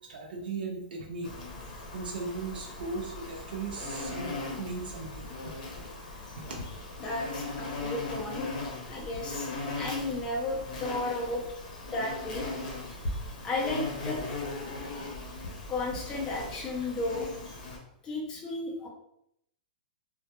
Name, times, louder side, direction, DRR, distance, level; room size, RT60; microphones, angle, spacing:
voice 1, 0.0-1.3 1.9-5.5 6.4-6.6, right 3 dB, 75° right, 1 dB, 0.4 m, -38 dB
Insect, 1.2-17.8, left 2 dB, 55° left, 0.7 m, -38 dB
voice 2, 7.0-8.5 8.9-9.5 9.8-11.4 11.9-12.4 13.4-14.2 15.7-17.3 18.0-18.9, left 2 dB, 10° left, -2 dB, 0.4 m, -33 dB
2.1 x 2.1 x 2.8 m, 0.77 s
hypercardioid pair, 180°, 5 cm